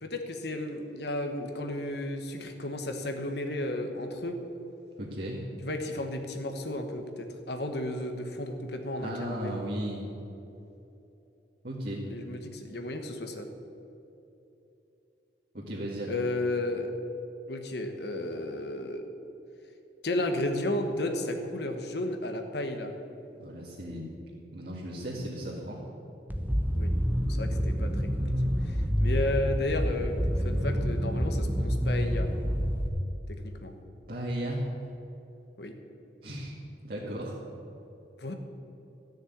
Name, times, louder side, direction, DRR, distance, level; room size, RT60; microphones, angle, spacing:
voice 1, 0.0-4.4 5.6-9.6 11.9-13.5 16.1-16.9 17.5-19.1 20.0-22.9 26.7-26.9 27.3-28.0 28.6-32.3 33.3-33.7 35.6-35.7 38.2-38.3, left 1 dB, 60° left, 5 dB, 1.3 m, -33 dB
voice 2, 5.0-5.4 9.0-10.0 11.6-12.1 15.5-16.1 23.4-24.1 24.5-25.8 34.1-34.7 36.2-36.5 36.8-37.3, right 1 dB, 50° right, -8 dB, 2.4 m, -35 dB
sound 1, 26.3-32.9, equal, 10° right, 0.9 m, -28 dB
14.5 x 6.6 x 9.5 m, 3.0 s
head